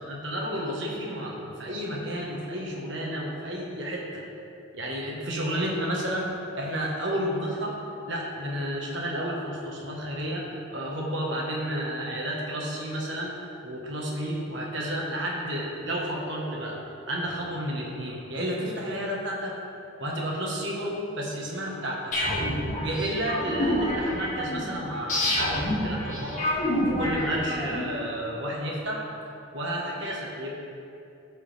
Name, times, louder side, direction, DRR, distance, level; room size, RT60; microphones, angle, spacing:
voice 1, 0.1-4.2 4.7-7.8 8.1-13.3 13.6-16.8 17.1-19.5 20.0-22.1 22.8-26.5 26.9-29.0 29.5-30.5, equal, 60° right, -2 dB, 1.5 m, -31 dB
sound 1, 22.1-27.9, left 1 dB, 35° left, 2.0 m, -28 dB
14.0 x 4.9 x 3.5 m, 2.6 s
head